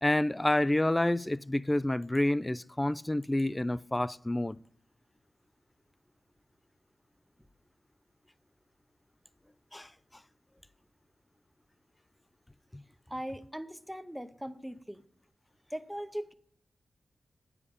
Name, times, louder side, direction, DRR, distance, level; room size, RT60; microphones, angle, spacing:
voice 1, 0.0-4.6 9.7-9.9 12.7-12.8, left 1 dB, 10° left, 0.3 m, -28 dB
voice 2, 13.1-15.0 15.7-16.3, equal, 5° right, 0.7 m, -39 dB
9.8 x 7.2 x 5.1 m
wide cardioid pair, 125°, 0 cm